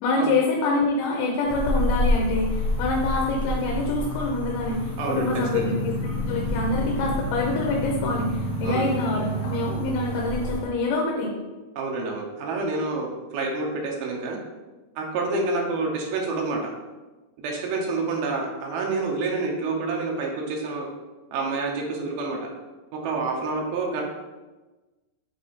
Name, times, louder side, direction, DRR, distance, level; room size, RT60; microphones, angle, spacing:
voice 1, 0.0-11.3, left 2 dB, 85° left, 0 dB, 3.0 m, -26 dB
sound 1, 1.5-10.6, left 1 dB, 45° left, 1.0 m, -28 dB
voice 2, 5.0-5.7 8.6-8.9 11.8-14.4 15.0-16.7 17.4-20.9 21.3-22.5 22.9-24.0, right 3 dB, 70° right, 0 dB, 2.5 m, -28 dB
7.5 x 4.2 x 4.2 m, 1.2 s
omnidirectional pair, 5.0 m